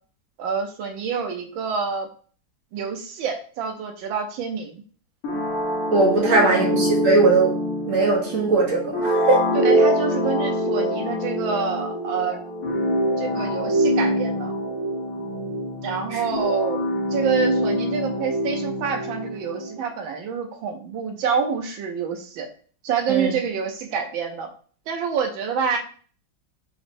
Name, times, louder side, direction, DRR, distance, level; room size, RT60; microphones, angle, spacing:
voice 1, 0.4-2.1 2.7-4.8 6.5-6.7 9.6-12.4 13.2-14.5 15.8-22.5 22.8-24.5 24.9-25.8, right 6 dB, 80° right, 4 dB, 1.4 m, -27 dB
sound 1, 5.2-19.8, equal, 50° left, 1.3 m, -24 dB
voice 2, 5.9-7.5 7.8-9.4 16.1-16.2 23.1-23.3, right 3 dB, 55° right, 0 dB, 1.0 m, -19 dB
4.0 x 3.0 x 2.6 m, 0.43 s
omnidirectional pair, 2.2 m